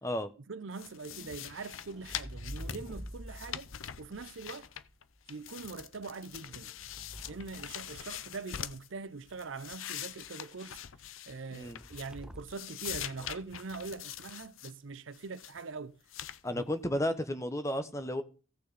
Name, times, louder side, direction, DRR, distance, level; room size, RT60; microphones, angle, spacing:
voice 1, 0.5-3.7 4.0-4.7 5.3-6.7 7.3-10.8 11.3-16.0 16.4-16.6, right 4 dB, 70° right, 0.6 m, -43 dB
sound 1, 0.7-5.0 5.3-8.9 9.3-12.2 12.5-14.7 15.1-15.6 16.1-16.4, left 10 dB, 80° left, 0.7 m, -43 dB
sound 2, 1.1-5.2 6.2-8.5 11.8-12.7 13.1-13.6, equal, 5° right, 0.5 m, -48 dB
voice 2, 16.4-18.2, left 1 dB, 15° left, 1.0 m, -33 dB
16.5 x 6.4 x 4.1 m
head